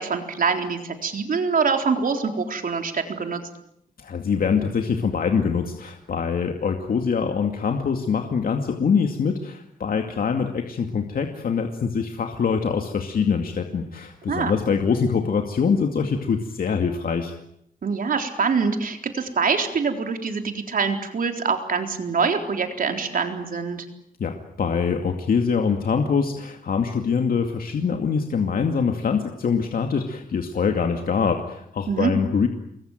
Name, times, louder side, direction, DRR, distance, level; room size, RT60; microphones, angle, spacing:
voice 1, 0.0-3.4 14.3-14.5 17.8-23.9 31.9-32.1, right 5 dB, 65° right, 5 dB, 3.9 m, -24 dB
voice 2, 4.0-17.3 24.2-32.5, left 6 dB, 70° left, 4 dB, 2.4 m, -24 dB
28.5 x 22.5 x 9.2 m, 0.75 s
wide cardioid pair, 110°, 15 cm